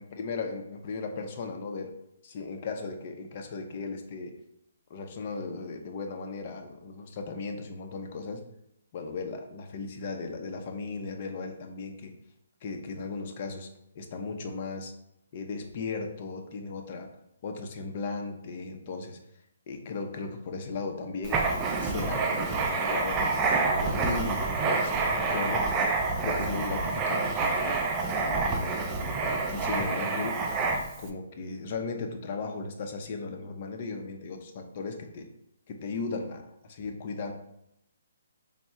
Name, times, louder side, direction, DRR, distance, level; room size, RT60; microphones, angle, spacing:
voice 1, 0.0-1.9 2.2-4.3 4.9-8.4 8.9-12.1 12.6-13.7 13.9-14.9 15.3-17.1 17.4-19.2 19.7-21.5 21.8-25.7 26.2-27.8 28.1-30.4 31.0-35.3 35.7-37.3, left 4 dB, 35° left, 4 dB, 0.5 m, -36 dB
Writing, 21.2-31.0, right 3 dB, 15° right, 0.3 m, -28 dB
3.5 x 2.1 x 4.2 m, 0.78 s
hypercardioid pair, 165°, 0 cm